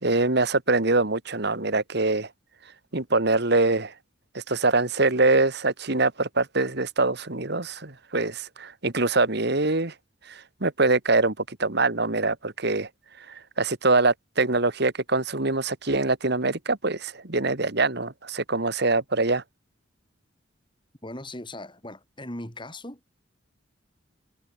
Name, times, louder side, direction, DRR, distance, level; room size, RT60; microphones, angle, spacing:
voice 1, 0.0-2.3 2.9-3.9 4.3-9.9 10.3-12.9 13.3-19.4, right 3 dB, 55° right, 2.1 m, -24 dB
voice 2, 21.0-23.0, left 1 dB, 25° left, 6.7 m, -38 dB
head